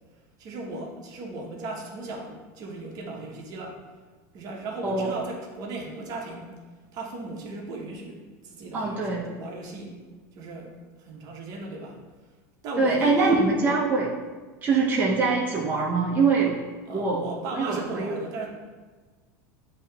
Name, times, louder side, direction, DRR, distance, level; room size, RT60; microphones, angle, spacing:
voice 1, 0.4-3.8 4.3-6.5 6.9-10.0 10.3-12.0 12.6-13.3 16.9-18.5, right 2 dB, 45° right, 0 dB, 0.9 m, -37 dB
voice 2, 8.7-9.2 12.8-14.1 14.6-16.6 16.9-17.2 17.5-18.1, right 4 dB, 20° right, -4 dB, 0.6 m, -23 dB
8.0 x 2.8 x 2.3 m, 1.4 s
supercardioid pair, 130°, 9 cm